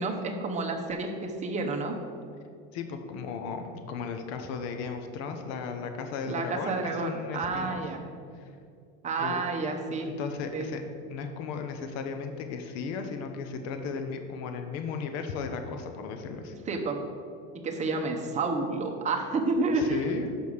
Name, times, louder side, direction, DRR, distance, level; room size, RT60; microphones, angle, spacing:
voice 1, 0.0-2.0 6.3-8.0 9.0-10.1 10.5-10.7 16.7-17.0 17.6-20.0, right 3 dB, 25° right, 3 dB, 0.9 m, -30 dB
voice 2, 2.7-7.8 8.4-8.5 9.2-9.4 9.9-10.8 11.1-16.6 19.7-20.4, left 5 dB, 55° left, 6 dB, 0.9 m, -35 dB
6.2 x 5.4 x 6.5 m, 2.4 s
supercardioid pair, 140°, 31 cm